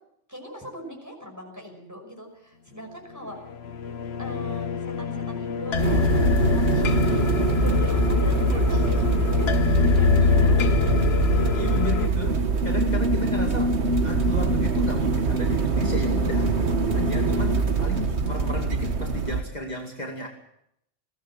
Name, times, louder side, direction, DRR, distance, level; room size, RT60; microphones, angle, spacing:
voice 1, 0.3-3.4 4.2-7.2 7.6-9.5 9.9-11.0, equal, 15° right, 2 dB, 5.8 m, -41 dB
sound 1, 3.3-12.1, left 8 dB, 60° left, 1.2 m, -25 dB
sound 2, 5.8-19.4, right 3 dB, 65° right, 1.7 m, -23 dB
voice 2, 11.3-20.3, left 2 dB, 35° left, 0 dB, 2.6 m, -33 dB
21.5 x 16.5 x 7.4 m, 0.76 s
omnidirectional pair, 1.2 m